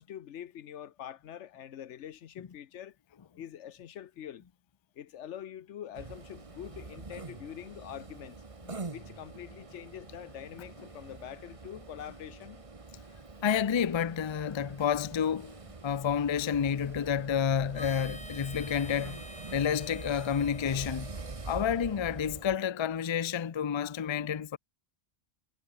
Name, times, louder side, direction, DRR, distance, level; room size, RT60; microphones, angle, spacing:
voice 1, 0.0-3.0 3.4-4.5 5.0-8.4 8.9-12.6, left 10 dB, 90° left, 1.1 m, -45 dB
sound 1, 5.9-22.6, right 3 dB, 30° right, 1.3 m, -45 dB
voice 2, 13.4-15.6 15.8-19.2 19.5-21.1 21.5-24.6, left 8 dB, 40° left, 0.4 m, -29 dB
Harmonica, 17.7-22.5, equal, 5° left, 3.9 m, -49 dB
omnidirectional pair, 1.2 m